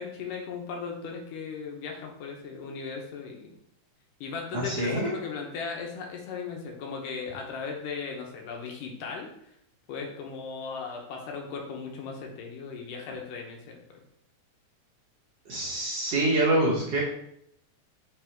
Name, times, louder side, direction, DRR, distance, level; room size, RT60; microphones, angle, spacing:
voice 1, 0.0-3.5 4.2-9.3 9.9-14.0, left 5 dB, 75° left, 1 dB, 2.5 m, -37 dB
voice 2, 4.5-5.1 15.5-17.0, right 1 dB, 60° right, -4 dB, 1.9 m, -26 dB
5.6 x 3.9 x 4.5 m, 0.73 s
omnidirectional pair, 3.8 m